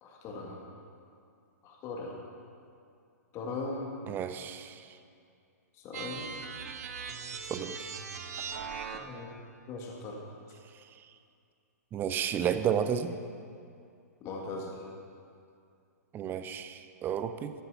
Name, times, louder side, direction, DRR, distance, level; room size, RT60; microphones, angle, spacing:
voice 1, 0.0-0.6 1.6-2.2 3.3-3.8 5.8-6.3 8.9-9.3 9.7-10.2 14.2-14.7, left 3 dB, 30° left, -1 dB, 1.8 m, -39 dB
voice 2, 4.1-5.0 7.5-7.9 11.9-13.2 16.1-17.5, right 8 dB, 20° right, 10 dB, 0.6 m, -32 dB
sound 1, 5.9-9.3, right 6 dB, 65° right, 1.1 m, -40 dB
13.0 x 8.0 x 5.7 m, 2.4 s
hypercardioid pair, 125°, 9 cm